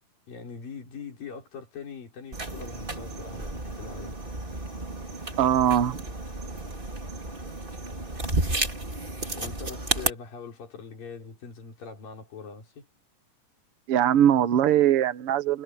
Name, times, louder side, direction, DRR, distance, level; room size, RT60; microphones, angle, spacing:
voice 1, 0.3-4.2 9.3-12.9, left 5 dB, 80° left, 6.6 m, -42 dB
sound 1, 2.3-10.1, right 2 dB, 15° right, 2.7 m, -32 dB
voice 2, 5.4-6.0 13.9-15.6, right 10 dB, 60° right, 1.6 m, -21 dB
omnidirectional pair, 3.9 m